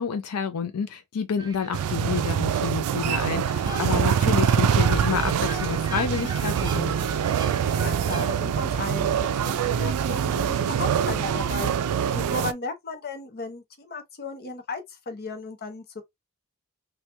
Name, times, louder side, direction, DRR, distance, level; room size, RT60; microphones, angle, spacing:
voice 1, 0.0-7.2, left 6 dB, 80° left, 0.5 m, -29 dB
sound 1, 1.4-8.4, right 1 dB, 20° right, 0.6 m, -40 dB
sound 2, 1.7-12.5, right 8 dB, 85° right, 0.4 m, -24 dB
sound 3, 2.9-12.3, right 4 dB, 50° right, 0.8 m, -40 dB
voice 2, 3.3-4.0 7.6-16.0, left 3 dB, 45° left, 0.8 m, -36 dB
3.0 x 2.3 x 3.2 m
head